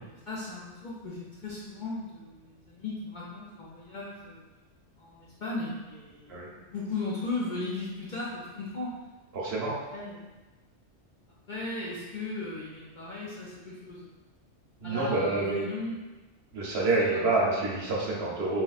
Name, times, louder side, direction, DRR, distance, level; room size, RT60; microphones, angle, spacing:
voice 1, 0.0-4.4 5.0-8.9 9.9-10.2 11.5-14.1 14.8-16.0 17.0-17.5, left 3 dB, 55° left, -7 dB, 0.6 m, -37 dB
voice 2, 9.3-9.7 14.8-15.7 16.5-18.6, right 2 dB, 65° right, -3 dB, 0.9 m, -27 dB
3.1 x 3.0 x 2.3 m, 1.2 s
omnidirectional pair, 1.2 m